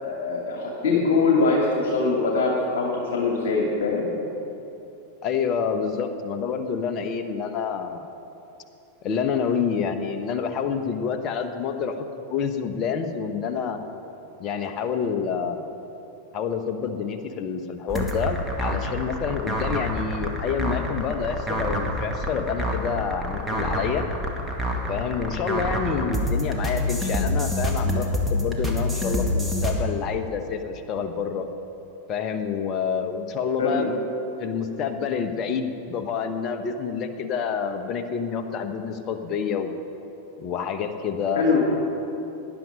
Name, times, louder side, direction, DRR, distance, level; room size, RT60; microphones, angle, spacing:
voice 1, 0.0-4.1 33.6-33.8 41.3-41.6, left 4 dB, 55° left, -1 dB, 2.1 m, -22 dB
voice 2, 5.2-8.1 9.0-13.8 14.4-15.7 16.3-24.0 24.9-31.5 32.1-34.0 34.4-39.7 40.4-41.8, left 6 dB, 35° left, 8 dB, 1.2 m, -28 dB
sound 1, 17.9-29.7, left 1 dB, ahead, 2.0 m, -27 dB
18.5 x 11.0 x 5.3 m, 3.0 s
figure-of-eight pair, 90°, 0 cm